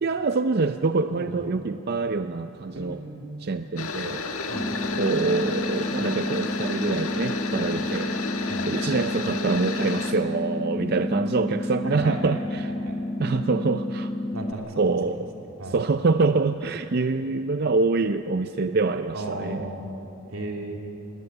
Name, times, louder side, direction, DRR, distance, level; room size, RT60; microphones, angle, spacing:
voice 1, 0.0-3.0 3.4-4.3 5.0-8.2 8.6-12.7 13.2-14.1 14.8-15.3 15.7-19.7, right 3 dB, 45° right, 9 dB, 0.4 m, -25 dB
voice 2, 1.1-1.5 2.7-3.4 4.5-4.7 7.7-7.9 8.5-8.7 11.8-12.4 12.8-12.9 14.3-15.0 15.6-15.8 19.1-19.9 20.3-20.8, right 2 dB, 85° right, 1 dB, 3.1 m, -35 dB
sound 1, 3.8-10.1, left 4 dB, 90° left, 1.6 m, -32 dB
sound 2, 4.5-14.5, left 1 dB, 15° left, 0.9 m, -30 dB
20.0 x 17.5 x 9.8 m, 3.0 s
head